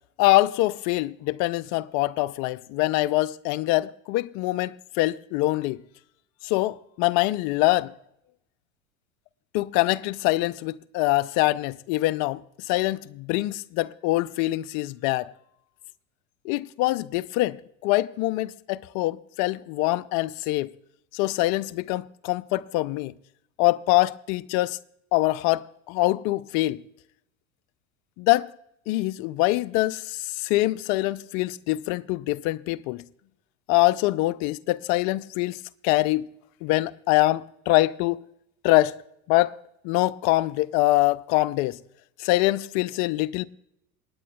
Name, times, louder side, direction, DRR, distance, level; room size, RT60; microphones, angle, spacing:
voice 1, 0.2-5.8 6.4-7.9 9.5-12.4 12.7-15.3 16.4-17.6 17.8-20.7 21.1-23.1 23.6-24.8 25.1-26.8 28.2-28.5 28.9-33.0 33.7-35.6 35.8-36.3 36.6-38.2 38.6-38.9 39.3-39.5 39.8-41.8 42.2-43.5, left 18 dB, 45° left, 0.6 m, -24 dB
27.5 x 9.5 x 2.3 m
hypercardioid pair, 80°, 41 cm